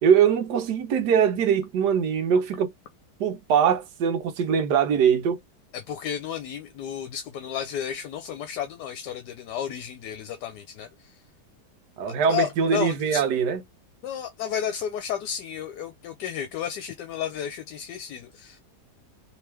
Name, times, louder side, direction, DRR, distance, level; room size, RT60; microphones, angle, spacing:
voice 1, 0.0-2.7 3.2-5.4 12.0-13.6, right 7 dB, 75° right, 1.3 m, -22 dB
voice 2, 5.7-11.2 12.3-13.2 14.0-18.6, left 9 dB, 75° left, 1.2 m, -32 dB
3.3 x 3.2 x 3.3 m
omnidirectional pair, 1.8 m